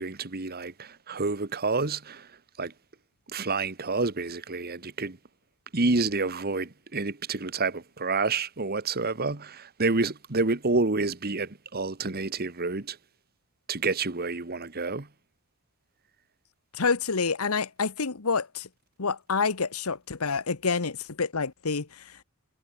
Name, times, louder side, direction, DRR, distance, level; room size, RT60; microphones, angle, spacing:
voice 1, 0.0-2.3 2.6-2.7 3.3-5.2 5.7-13.0 13.7-15.1, right 3 dB, 45° right, 1.5 m, -29 dB
voice 2, 16.7-18.7 19.0-22.2, left 5 dB, 85° left, 1.2 m, -28 dB
head